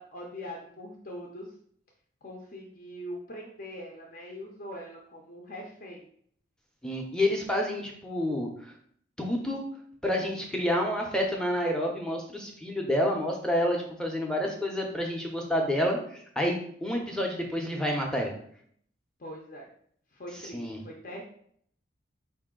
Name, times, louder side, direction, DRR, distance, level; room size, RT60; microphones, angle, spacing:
voice 1, 0.0-1.5 2.2-6.1 14.5-14.6 19.2-19.7 20.1-21.2, equal, 45° left, -1 dB, 0.6 m, -42 dB
voice 2, 6.8-8.5 9.2-9.6 10.0-18.3 20.5-20.8, left 1 dB, 5° left, 0 dB, 0.6 m, -29 dB
4.6 x 2.6 x 3.7 m, 0.62 s
head